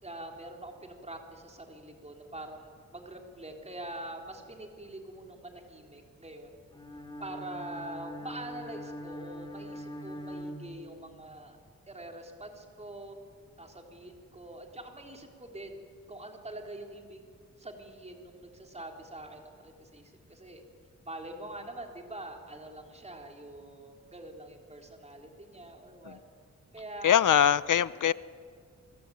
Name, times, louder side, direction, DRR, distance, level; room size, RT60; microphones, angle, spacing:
voice 1, 0.0-6.6 7.2-11.6 11.9-13.2 13.6-17.2 17.6-20.0 20.3-20.6 21.0-26.2 26.7-27.3 27.9-28.0, right 1 dB, 20° right, 2 dB, 3.6 m, -44 dB
Bowed string instrument, 6.7-11.3, equal, 15° left, 3.1 m, -42 dB
voice 2, 27.0-28.1, left 9 dB, 80° left, 17 dB, 0.8 m, -23 dB
28.0 x 23.0 x 9.3 m, 2.1 s
wide cardioid pair, 160°, 31 cm